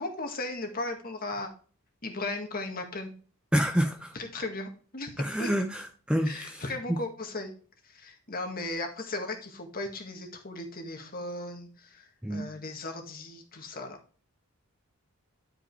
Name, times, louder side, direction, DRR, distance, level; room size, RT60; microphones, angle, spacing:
voice 1, 0.0-1.5 2.0-3.1 4.1-5.5 6.3-7.5 7.8-14.0, left 2 dB, 40° left, 4 dB, 1.9 m, -36 dB
voice 2, 3.5-4.1 5.2-6.6 6.9-7.0 12.2-12.4, equal, 5° right, 4 dB, 0.8 m, -28 dB
11.5 x 5.1 x 3.3 m, 0.40 s
head